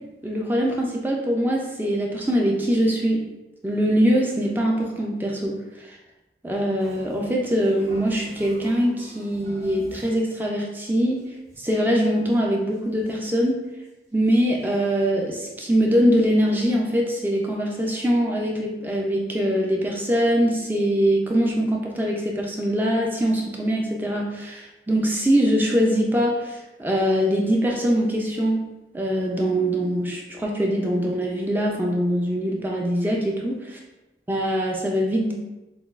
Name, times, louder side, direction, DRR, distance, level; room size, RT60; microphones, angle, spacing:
voice 1, 0.2-3.2 3.6-6.0 6.4-11.2 11.6-13.6 14.1-28.6 28.9-33.6 34.3-35.3, equal, 10° right, -1 dB, 0.4 m, -23 dB
sound 1, 6.8-10.4 10.7-10.8 11.1-11.8 12.3-12.4 12.6-13.4 13.8-13.9 14.3-14.9 15.4-15.5 15.7-15.8, right 1 dB, 40° right, 1.3 m, -42 dB
5.7 x 2.3 x 2.4 m, 1.0 s
head